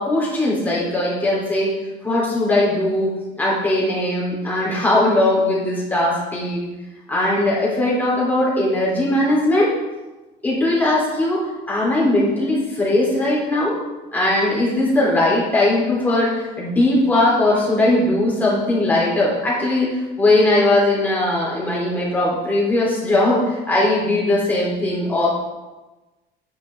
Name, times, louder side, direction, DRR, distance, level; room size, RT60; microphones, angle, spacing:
voice 1, 0.0-1.8 2.0-6.6 7.1-9.7 10.4-13.8 14.1-25.3, left 1 dB, 10° left, -6 dB, 3.7 m, -19 dB
10.5 x 9.9 x 3.8 m, 1.1 s
cardioid pair, 175°, 18 cm